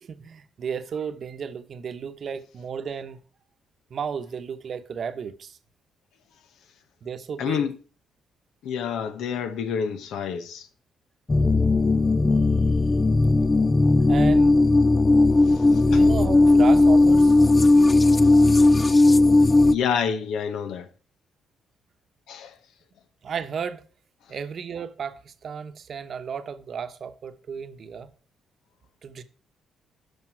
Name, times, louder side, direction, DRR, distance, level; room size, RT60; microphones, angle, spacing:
voice 1, 0.0-3.2 3.9-5.6 7.0-7.6 14.1-14.6 15.4-15.5 15.8-17.4 23.2-23.8 24.3-28.1 29.0-29.2, right 6 dB, 55° right, 0.9 m, -33 dB
voice 2, 7.4-7.7 8.6-10.7 15.7-16.0 19.7-20.9 22.3-22.5, left 7 dB, 80° left, 1.1 m, -28 dB
sound 1, 11.3-19.8, left 2 dB, 25° left, 0.4 m, -17 dB
12.0 x 5.6 x 4.6 m
cardioid pair, 90°, 0 cm